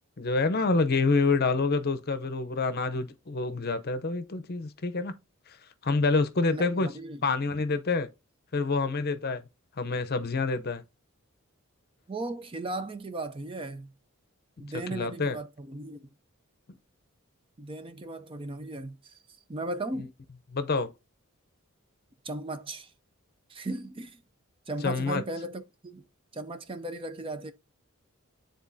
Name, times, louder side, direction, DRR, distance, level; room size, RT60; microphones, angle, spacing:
voice 1, 0.2-5.1 5.8-6.9 7.2-8.1 8.5-9.4 9.8-10.8 14.9-15.4 20.5-20.9 24.8-25.2, left 3 dB, 45° left, 0.7 m, -27 dB
voice 2, 6.5-7.2 12.1-13.9 14.6-16.1 17.6-19.2 19.5-20.1 22.2-22.9 23.5-24.2 24.7-26.0 26.3-27.5, right 2 dB, 25° right, 0.5 m, -36 dB
9.5 x 3.8 x 2.7 m
head